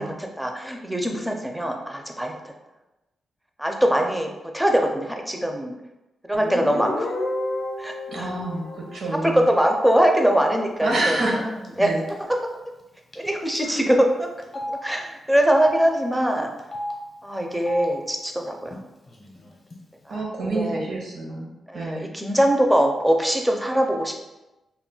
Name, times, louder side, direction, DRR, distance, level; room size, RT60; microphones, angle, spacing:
voice 1, 0.0-2.3 3.6-5.8 6.3-7.1 7.8-8.3 9.2-11.9 13.2-14.3 14.7-16.5 17.2-18.7 20.1-20.2 20.5-20.8 21.7-24.2, equal, 5° right, 2 dB, 0.4 m, -22 dB
Guitar, 6.3-9.8, left 2 dB, 85° left, 0.5 m, -31 dB
voice 2, 8.1-9.5 10.8-12.0 13.6-13.8 20.1-22.1, right 2 dB, 70° right, -1 dB, 0.6 m, -28 dB
Telephone, 11.6-11.8 12.1-12.2 13.1-13.3 13.5-13.6 14.4-14.7 15.5-15.8 16.6-16.9 17.5-17.9 18.7-18.8 19.1-19.7, left 1 dB, 35° left, 0.6 m, -32 dB
2.3 x 2.1 x 3.7 m, 1.0 s
cardioid pair, 95°, 0 cm